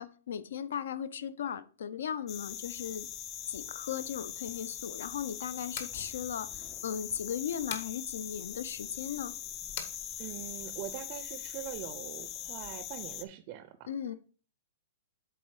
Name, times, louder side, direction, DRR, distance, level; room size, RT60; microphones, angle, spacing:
voice 1, 0.0-3.1 3.5-9.4 13.9-14.1, left 8 dB, 75° left, 0.6 m, -37 dB
sound 1, 2.3-13.2, left 10 dB, 25° left, 0.4 m, -42 dB
sound 2, 5.7-6.0 7.7-8.0 9.8-10.0, left 7 dB, 50° left, 1.2 m, -39 dB
voice 2, 10.2-13.9, right 13 dB, 35° right, 0.5 m, -43 dB
7.7 x 4.0 x 4.7 m
hypercardioid pair, 160°, 0 cm